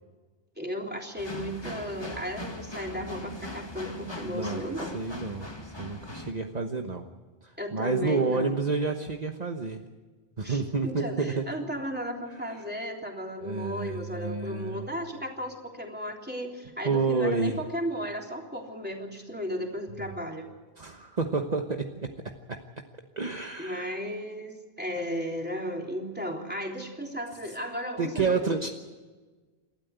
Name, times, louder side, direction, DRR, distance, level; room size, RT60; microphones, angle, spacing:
voice 1, 0.6-4.9 7.6-8.5 10.4-20.5 23.2-23.3 23.6-28.5, equal, 10° right, 1 dB, 3.4 m, -35 dB
sound 1, 1.2-6.3, left 2 dB, 25° left, 2.1 m, -40 dB
voice 2, 4.2-7.0 7.4-9.8 10.4-11.4 12.5-12.6 13.4-14.9 16.8-17.6 20.8-22.1 22.5-22.6 23.2-24.0 28.0-28.7, right 4 dB, 45° right, 4 dB, 1.3 m, -29 dB
28.5 x 13.0 x 8.1 m, 1.3 s
omnidirectional pair, 1.0 m